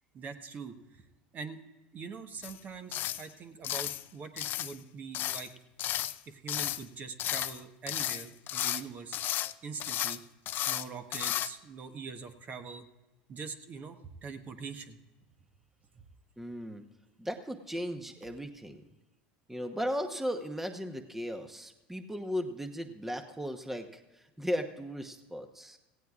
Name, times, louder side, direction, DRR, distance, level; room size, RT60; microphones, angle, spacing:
voice 1, 0.1-1.0 1.3-1.6 1.9-5.5 6.3-9.2 9.6-10.2 10.7-12.9 13.3-15.0, right 5 dB, 40° right, 7 dB, 1.1 m, -43 dB
sound 1, 2.4-2.6 2.9-3.3 3.6-4.0 4.4-4.8 5.1-5.5 5.8-6.2 6.5-6.8 7.2-7.6 7.9-8.8 9.1-9.5 9.8-10.2 10.5-10.9 11.1-11.5, left 13 dB, 50° left, 0.5 m, -33 dB
voice 2, 16.4-16.8 17.2-18.8 19.5-25.8, equal, 5° right, 6 dB, 1.0 m, -36 dB
17.5 x 16.0 x 2.4 m, 1.1 s
supercardioid pair, 100°, 4 cm